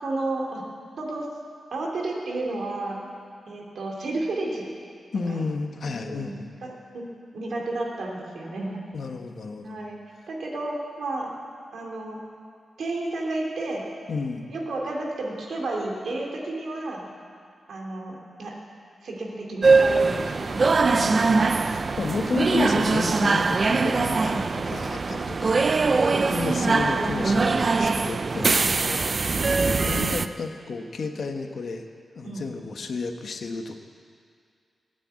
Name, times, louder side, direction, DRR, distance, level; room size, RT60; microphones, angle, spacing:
voice 1, 0.0-0.6 1.0-1.3 1.7-3.1 3.5-4.7 5.3-5.4 5.8-7.0 7.3-8.8 9.6-10.0 10.3-11.3 11.7-12.2 12.8-13.8 14.5-17.1 17.7-18.5 19.0-20.5 24.2-24.6 25.9-27.3 28.5-28.8 32.2-32.4, right 2 dB, 70° right, -1 dB, 2.8 m, -32 dB
voice 2, 5.1-6.5 8.9-9.8 14.1-14.5 20.9-25.6 26.3-31.8 32.1-33.8, left 4 dB, 55° left, 5 dB, 1.1 m, -32 dB
sound 1, 19.6-30.3, right 4 dB, 35° right, 0.4 m, -22 dB
17.5 x 9.2 x 8.2 m, 2.2 s
wide cardioid pair, 155°, 0 cm